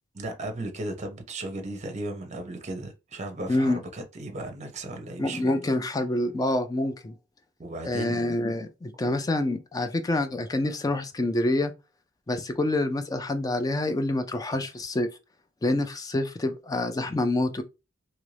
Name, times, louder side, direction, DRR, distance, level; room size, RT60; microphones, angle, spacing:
voice 1, 0.1-5.5 7.6-8.2 9.0-9.1, right 1 dB, 35° right, 0.6 m, -36 dB
voice 2, 3.5-3.8 5.2-7.1 7.8-11.7 12.3-15.1 15.6-17.6, left 2 dB, 20° left, 0.3 m, -27 dB
2.9 x 2.5 x 3.2 m
head